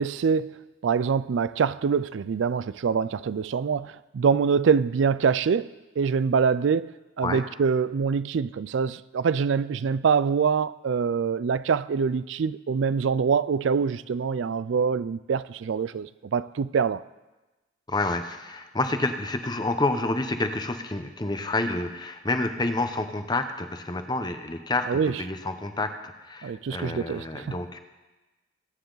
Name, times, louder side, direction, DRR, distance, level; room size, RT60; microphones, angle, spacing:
voice 1, 0.0-5.7 6.0-6.9 7.2-17.0 24.9-25.1 26.4-27.6, right 6 dB, 80° right, 0.4 m, -25 dB
voice 2, 17.9-27.8, left 2 dB, 20° left, 0.8 m, -29 dB
21.0 x 9.3 x 3.9 m
head